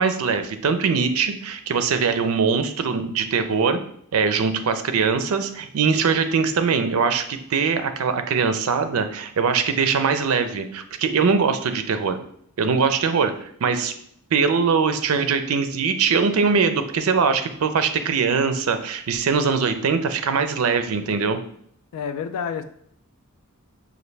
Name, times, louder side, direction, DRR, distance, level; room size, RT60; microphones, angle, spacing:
voice 1, 0.0-3.8 4.1-12.2 12.6-13.9 14.3-21.4, right 5 dB, 75° right, 9 dB, 0.4 m, -22 dB
voice 2, 21.9-22.6, left 7 dB, 90° left, 9 dB, 0.3 m, -28 dB
5.1 x 2.5 x 3.2 m, 0.67 s
head